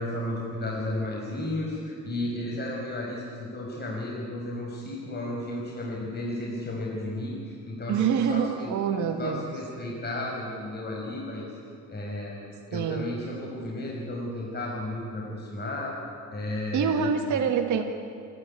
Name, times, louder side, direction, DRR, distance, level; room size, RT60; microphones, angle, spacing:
voice 1, 0.0-8.7 9.2-11.5 11.9-12.3 12.7-15.9 16.3-17.4, left 1 dB, 35° left, -3 dB, 5.5 m, -33 dB
voice 2, 7.9-9.5 12.7-13.1 16.7-17.8, right 7 dB, 75° right, 4 dB, 1.7 m, -26 dB
27.0 x 13.5 x 9.8 m, 2.4 s
cardioid pair, 90°, 30 cm